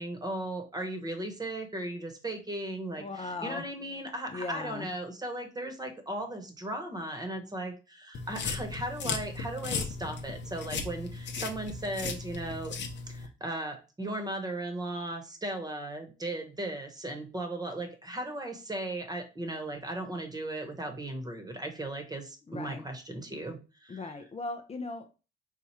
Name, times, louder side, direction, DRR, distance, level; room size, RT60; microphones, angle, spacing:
voice 1, 0.0-12.8 13.1-24.2, right 1 dB, 20° right, 5 dB, 1.0 m, -37 dB
voice 2, 3.0-3.6 4.3-4.9 22.5-22.8 23.9-25.1, left 3 dB, 30° left, 5 dB, 0.6 m, -38 dB
sound 1, 8.1-13.3, left 4 dB, 65° left, 0.8 m, -36 dB
4.6 x 2.3 x 4.3 m, 0.32 s
cardioid pair, 90°, 20 cm